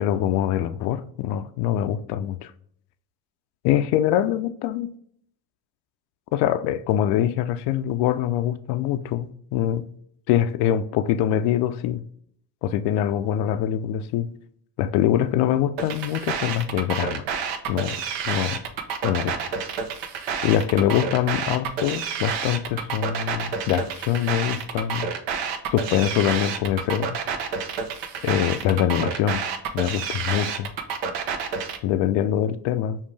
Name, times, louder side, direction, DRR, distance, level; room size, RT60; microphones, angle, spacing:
voice 1, 0.0-2.5 3.6-4.9 6.3-9.8 10.3-12.0 12.6-14.3 14.8-17.2 17.7-18.0 18.3-18.6 19.0-19.4 20.4-25.1 25.7-27.2 28.2-29.5 29.7-30.7 31.8-33.0, left 11 dB, 55° left, 0.5 m, -24 dB
sound 1, 15.8-31.8, right 6 dB, 65° right, 0.8 m, -29 dB
5.3 x 2.4 x 3.3 m
supercardioid pair, 85°, 48 cm